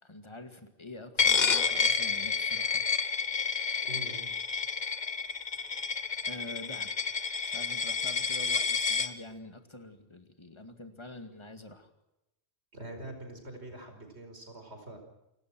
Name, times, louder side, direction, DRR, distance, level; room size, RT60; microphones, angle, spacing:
voice 1, 0.0-2.8 5.9-6.0 6.3-6.9 7.5-11.9, left 2 dB, 25° left, 7 dB, 2.2 m, -46 dB
Coin (dropping), 1.2-9.1, left 5 dB, 45° left, 1.2 m, -29 dB
voice 2, 3.8-4.3 12.7-15.0, right 1 dB, 85° right, 5 dB, 5.4 m, -44 dB
29.0 x 17.5 x 6.2 m, 0.89 s
omnidirectional pair, 1.1 m